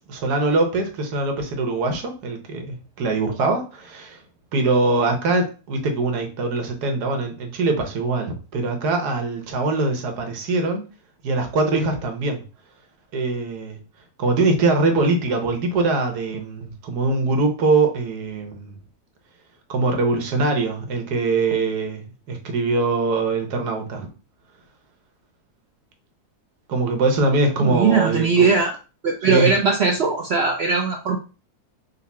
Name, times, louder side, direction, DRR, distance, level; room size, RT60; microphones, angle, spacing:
voice 1, 0.1-4.2 4.5-10.8 11.2-12.4 13.1-13.8 14.2-18.7 19.7-24.1 26.7-28.5 29.3-29.5, right 3 dB, 90° right, 5 dB, 1.5 m, -22 dB
voice 2, 27.6-28.7 29.0-31.2, right 5 dB, 65° right, 2 dB, 0.6 m, -19 dB
4.0 x 2.6 x 4.1 m, 0.34 s
omnidirectional pair, 1.7 m